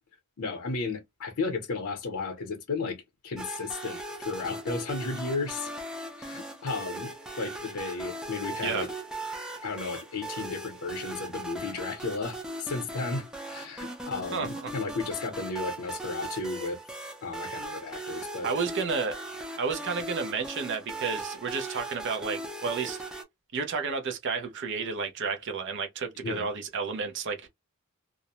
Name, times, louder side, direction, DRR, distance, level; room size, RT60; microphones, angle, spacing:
voice 1, 0.4-5.7 6.2-7.1 7.4-8.9 9.6-16.8 17.2-18.5 26.2-26.5, left 3 dB, 65° left, 0.7 m, -34 dB
sound 1, 3.4-23.2, right 2 dB, 5° right, 0.4 m, -39 dB
voice 2, 14.3-14.7 18.4-19.2 19.6-23.0 23.5-27.5, right 5 dB, 55° right, 0.6 m, -31 dB
2.4 x 2.0 x 2.8 m
head